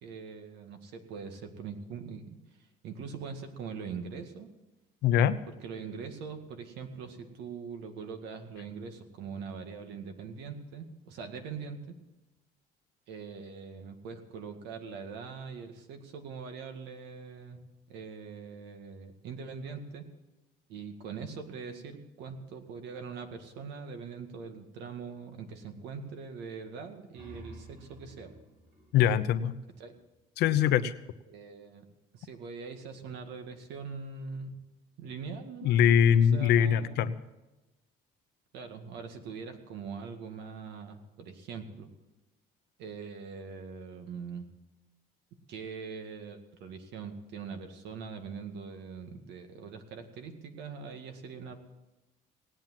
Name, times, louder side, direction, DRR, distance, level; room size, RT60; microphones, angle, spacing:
voice 1, 0.0-2.4 2.8-4.5 5.5-11.9 13.1-20.0 20.7-28.3 29.8-29.9 31.3-31.9 32.1-34.6 35.0-35.8 36.2-37.1 38.5-41.9 42.8-44.5 45.5-51.6, right 5 dB, 85° right, 6 dB, 2.0 m, -42 dB
voice 2, 5.0-5.4 28.9-29.6 30.4-30.9 35.6-37.1, left 9 dB, 80° left, 12 dB, 0.9 m, -23 dB
sound 1, 26.9-30.3, right 1 dB, 55° right, 5.5 m, -52 dB
18.5 x 9.0 x 7.5 m, 1.0 s
cardioid pair, 110°, 17 cm